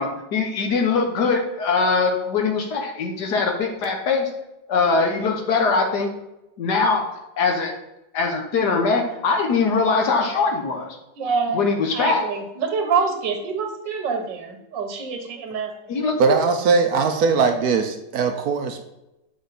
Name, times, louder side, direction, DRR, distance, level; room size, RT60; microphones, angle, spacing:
voice 1, 0.0-4.3 4.7-6.1 6.6-7.0 7.4-7.8 8.1-10.9 11.5-12.2 15.9-16.4, left 4 dB, 70° left, 3 dB, 1.6 m, -22 dB
voice 2, 11.2-11.6 11.9-16.1, right 5 dB, 85° right, 4 dB, 1.8 m, -26 dB
voice 3, 16.2-18.8, right 5 dB, 65° right, 6 dB, 1.0 m, -20 dB
7.9 x 4.6 x 4.1 m, 0.94 s
omnidirectional pair, 1.9 m